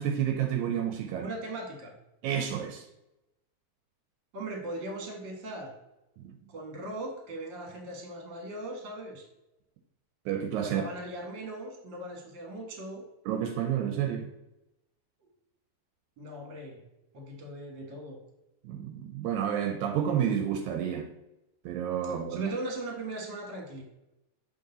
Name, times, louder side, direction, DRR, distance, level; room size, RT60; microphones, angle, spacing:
voice 1, 0.0-1.3 2.2-2.8 6.2-6.3 10.3-10.9 13.3-14.3 18.6-21.1 21.7-22.5, right 9 dB, 80° right, 2.0 m, -30 dB
voice 2, 1.2-1.9 4.3-5.7 6.5-9.2 10.7-13.0 16.2-16.8 17.1-18.2 22.3-23.8, right 1 dB, 45° right, 1.8 m, -39 dB
6.6 x 4.2 x 3.9 m
omnidirectional pair, 3.5 m